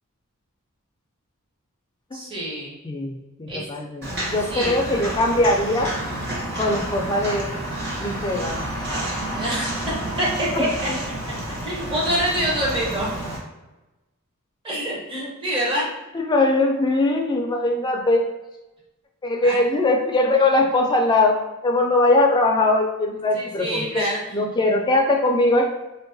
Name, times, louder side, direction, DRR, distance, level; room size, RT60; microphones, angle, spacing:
voice 1, 2.1-2.7 3.5-3.6 4.5-4.8 9.3-9.7 10.2-10.7 11.6-13.1 14.6-15.9 19.4-19.6 23.3-24.2, right 1 dB, 25° right, -6 dB, 0.7 m, -26 dB
voice 2, 2.8-5.9 6.6-7.5 8.0-8.7 10.5-11.0 16.1-18.2 19.2-24.0 24.3-25.7, left 2 dB, 20° left, 2 dB, 0.3 m, -21 dB
Walk footsteps, 4.0-13.4, right 1 dB, 50° right, 1.0 m, -29 dB
4.5 x 2.1 x 2.6 m, 1.0 s
head